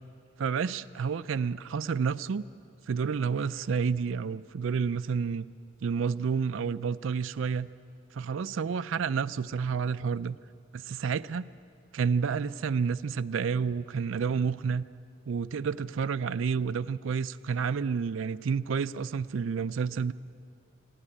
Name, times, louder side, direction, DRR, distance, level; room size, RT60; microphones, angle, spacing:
voice 1, 0.4-2.5 2.9-5.5 5.8-7.7 8.1-10.4 10.7-11.5 11.9-14.9 15.3-20.1, right 6 dB, 70° right, 12 dB, 0.4 m, -30 dB
26.5 x 11.0 x 10.0 m, 2.4 s
head